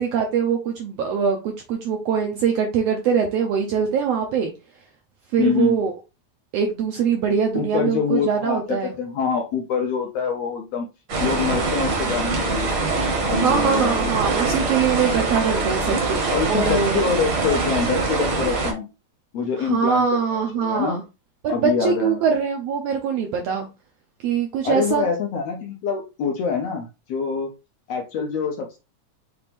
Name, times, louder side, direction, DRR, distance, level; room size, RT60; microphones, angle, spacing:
voice 1, 0.0-4.5 5.3-5.9 6.5-8.9 13.4-17.0 19.6-21.0 21.4-23.7 24.2-25.1, right 6 dB, 80° right, 1.5 m, -23 dB
voice 2, 5.4-5.8 7.5-10.9 11.2-12.7 13.3-14.0 16.3-18.9 19.3-20.2 20.5-21.0 21.5-22.2 24.6-27.5 27.9-28.8, left 6 dB, 75° left, 1.6 m, -25 dB
sound 1, 11.1-18.7, right 3 dB, 55° right, 1.3 m, -23 dB
5.8 x 2.5 x 3.4 m
omnidirectional pair, 3.5 m